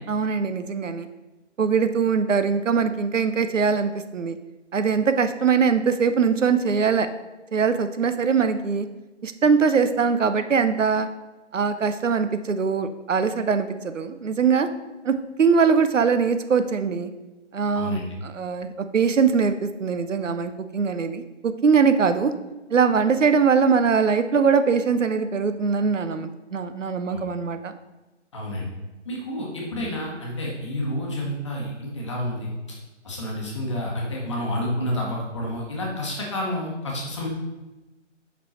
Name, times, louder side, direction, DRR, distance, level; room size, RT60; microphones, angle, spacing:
voice 1, 0.1-1.1 1.6-4.4 4.7-7.1 7.5-8.9 9.2-11.1 11.5-14.7 15.0-17.1 17.5-22.3 22.7-27.7, right 5 dB, 85° right, 10 dB, 0.7 m, -22 dB
voice 2, 17.7-18.1 27.1-27.2 28.3-28.7 29.0-32.5 33.0-37.3, left 1 dB, 25° left, -2 dB, 1.1 m, -29 dB
5.5 x 5.2 x 4.3 m, 1.1 s
figure-of-eight pair, 160°, 37 cm